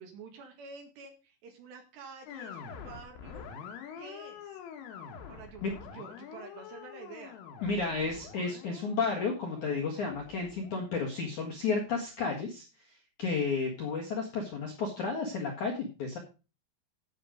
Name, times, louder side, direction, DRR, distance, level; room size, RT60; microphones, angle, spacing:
voice 1, 0.0-3.5 4.0-4.6 5.3-7.4, right 4 dB, 60° right, 3 dB, 3.8 m, -48 dB
sound 1, 2.3-11.6, left 7 dB, 75° left, 4.3 m, -47 dB
voice 2, 7.6-12.6 13.2-16.2, left 4 dB, 60° left, -1 dB, 2.1 m, -32 dB
15.0 x 6.4 x 5.1 m, 0.32 s
omnidirectional pair, 6.0 m